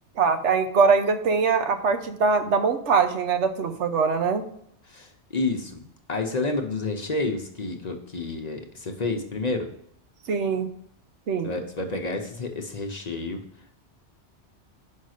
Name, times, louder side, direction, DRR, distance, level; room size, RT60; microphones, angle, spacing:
voice 1, 0.2-4.4 10.3-10.7 11.3-11.5, right 5 dB, 80° right, 8 dB, 1.1 m, -22 dB
voice 2, 4.9-5.8 6.1-9.7 11.4-13.4, left 3 dB, 40° left, 4 dB, 0.8 m, -29 dB
5.6 x 5.3 x 6.4 m, 0.72 s
omnidirectional pair, 1.2 m